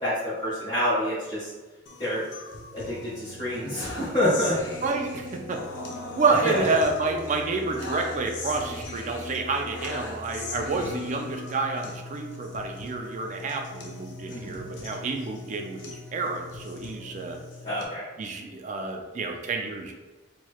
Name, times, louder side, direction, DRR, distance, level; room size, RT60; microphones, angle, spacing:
voice 1, 0.0-1.5 2.0-2.2 2.7-4.6 6.4-6.6 14.3-14.6 17.6-18.0, left 1 dB, 30° left, -12 dB, 1.3 m, -27 dB
sound 1, 1.9-17.9, left 2 dB, 70° left, 0.6 m, -39 dB
voice 2, 4.8-5.6 6.1-17.4 18.2-19.9, right 3 dB, 40° right, 3 dB, 0.4 m, -29 dB
3.1 x 3.0 x 2.3 m, 1.2 s
head